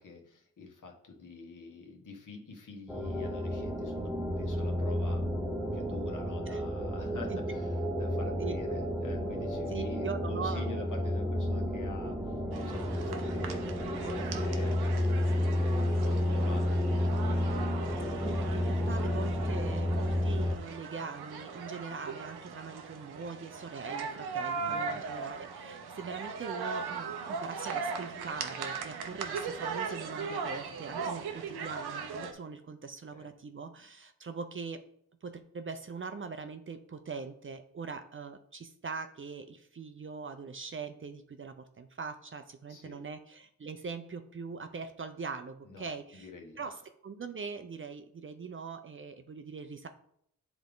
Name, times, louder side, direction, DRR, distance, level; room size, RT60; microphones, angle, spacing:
voice 1, 0.0-5.2 5.7-17.7 24.6-25.0 33.1-33.3 42.7-43.0 45.6-46.8, left 4 dB, 55° left, 2 dB, 1.4 m, -47 dB
sound 1, 2.9-20.6, left 1 dB, ahead, 0.8 m, -31 dB
voice 2, 9.7-10.7 18.2-34.8 35.2-46.3 46.6-46.8 47.0-49.9, right 5 dB, 35° right, 8 dB, 0.6 m, -42 dB
sound 2, 12.5-32.3, right 5 dB, 85° right, 0.9 m, -39 dB
8.5 x 3.5 x 3.9 m, 0.71 s
cardioid pair, 85°, 37 cm